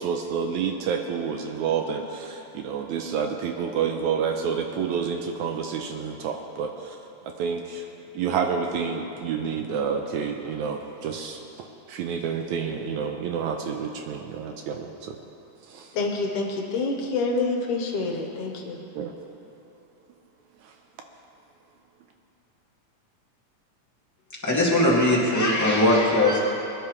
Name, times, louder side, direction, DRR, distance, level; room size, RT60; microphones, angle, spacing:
voice 1, 0.0-7.0 7.2-7.9 8.1-11.4 11.9-15.2 15.7-15.9 19.0-19.2 20.6-20.7, right 6 dB, 80° right, 4 dB, 1.9 m, -29 dB
voice 2, 15.9-18.8, left 3 dB, 75° left, 1 dB, 2.6 m, -27 dB
voice 3, 24.4-26.4, left 1 dB, 5° left, -6 dB, 1.4 m, -20 dB
22.0 x 10.5 x 3.2 m, 2.8 s
omnidirectional pair, 3.7 m